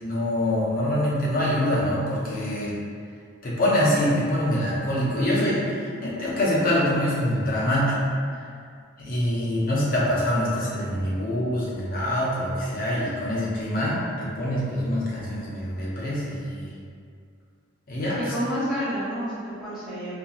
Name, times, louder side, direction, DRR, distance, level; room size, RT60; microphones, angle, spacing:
voice 1, 0.0-2.7 3.4-8.0 9.0-16.7 17.9-18.2, left 1 dB, 40° left, -7 dB, 0.6 m, -25 dB
voice 2, 18.1-20.1, equal, ahead, -15 dB, 1.0 m, -29 dB
2.8 x 2.5 x 2.3 m, 2.2 s
head